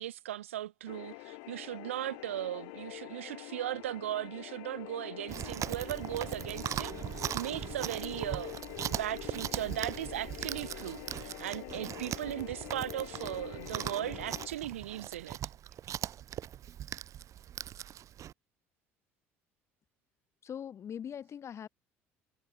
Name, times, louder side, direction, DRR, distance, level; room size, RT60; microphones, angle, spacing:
voice 1, 0.0-15.4, right 13 dB, 90° right, 0.8 m, -38 dB
sound 1, 0.9-14.5, left 40 dB or more, 75° left, 0.8 m, -45 dB
Chewing mastication, 5.3-18.3, right 11 dB, 50° right, 0.8 m, -39 dB
voice 2, 20.4-21.7, left 8 dB, 45° left, 0.8 m, -41 dB
hypercardioid pair, 65°, 7 cm